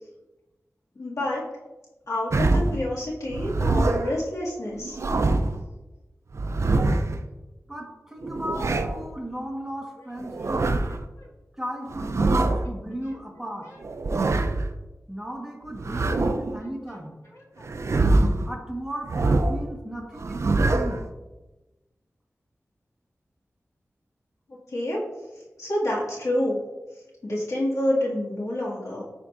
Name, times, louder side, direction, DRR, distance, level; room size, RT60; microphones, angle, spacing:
voice 1, 1.0-1.4 2.1-5.0 10.9-11.3 16.8-16.9 17.3-17.6 24.7-25.0 25.6-26.6 27.2-29.0, left 1 dB, 75° left, -6 dB, 2.1 m, -28 dB
sound 1, 2.3-2.8 3.3-4.1 4.8-5.6 6.3-7.2 8.2-9.0 10.2-11.0 11.9-12.6 13.8-14.7 15.7-16.6 17.6-18.5 19.1-19.7 20.2-21.0, right 2 dB, 60° right, 0.4 m, -24 dB
voice 2, 7.7-10.7 11.6-13.7 15.1-17.2 18.4-21.0, equal, 10° right, 0 dB, 1.3 m, -35 dB
10.0 x 4.4 x 2.6 m, 1.1 s
wide cardioid pair, 85°, 6 cm